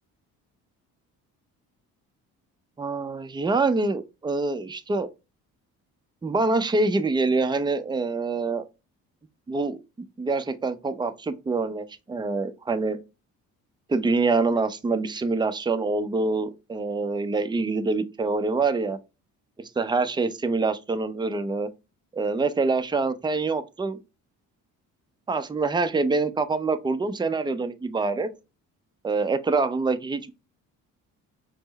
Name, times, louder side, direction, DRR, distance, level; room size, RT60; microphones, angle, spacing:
voice 1, 2.8-5.1 6.2-8.7 9.5-9.8 10.2-13.0 13.9-19.0 19.6-21.7 22.1-24.0 25.3-28.3 29.0-30.3, right 3 dB, 10° right, 0.5 m, -25 dB
4.4 x 2.1 x 3.9 m
hypercardioid pair, 55°, 41 cm